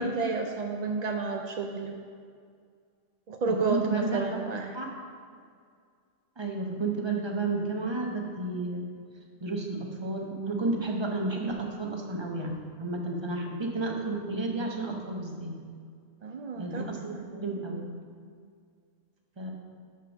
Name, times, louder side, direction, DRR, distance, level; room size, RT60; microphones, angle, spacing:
voice 1, 0.0-2.0 3.3-4.7 16.2-17.2, right 3 dB, 70° right, 3 dB, 0.4 m, -31 dB
voice 2, 3.5-4.9 6.4-8.9 9.4-15.5 16.6-17.9 19.4-19.5, right 2 dB, 25° right, 1 dB, 0.8 m, -32 dB
6.0 x 5.6 x 6.4 m, 2.1 s
omnidirectional pair, 1.3 m